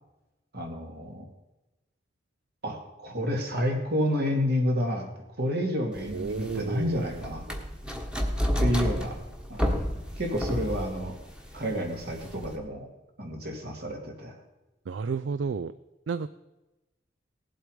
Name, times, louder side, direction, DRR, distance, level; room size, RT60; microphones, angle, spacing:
voice 1, 0.5-1.3 2.6-5.1 5.4-7.5 8.6-9.2 9.5-9.7 10.2-11.2 11.5-12.9 13.2-14.4, equal, 60° right, 2 dB, 2.6 m, -29 dB
sound 1, 6.0-12.6, equal, 5° right, 1.3 m, -31 dB
voice 2, 6.1-7.2 7.5-7.6 14.9-15.7 16.1-16.3, right 5 dB, 75° right, 14 dB, 0.4 m, -32 dB
18.0 x 7.8 x 5.0 m, 1.0 s
head